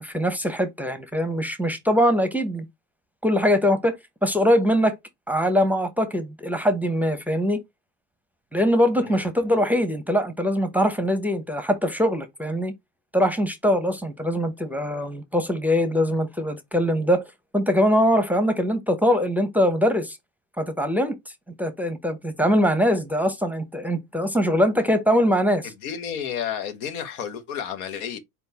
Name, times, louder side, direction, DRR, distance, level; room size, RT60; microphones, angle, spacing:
voice 1, 0.0-2.7 3.2-4.0 4.2-5.0 5.3-7.6 8.5-12.7 13.1-17.2 17.5-20.2 20.6-21.2 21.6-25.7, equal, 5° right, 0.6 m, -22 dB
voice 2, 25.6-28.2, left 8 dB, 85° left, 1.1 m, -32 dB
4.2 x 3.5 x 2.8 m
hypercardioid pair, 85°, 42 cm